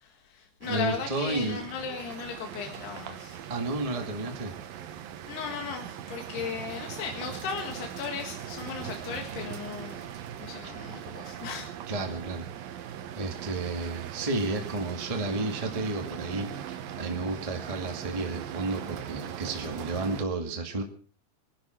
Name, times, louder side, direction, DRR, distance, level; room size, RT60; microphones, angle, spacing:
voice 1, 0.0-3.4 5.3-10.0 10.4-11.7, left 6 dB, 80° left, 3 dB, 3.9 m, -36 dB
voice 2, 0.6-1.6 3.5-4.5 10.9-11.0 11.9-12.5 13.1-20.8, right 2 dB, 20° right, 2 dB, 1.0 m, -32 dB
sound 1, 0.6-20.2, right 9 dB, 70° right, 2.7 m, -40 dB
24.0 x 12.0 x 4.6 m, 0.43 s
omnidirectional pair, 4.6 m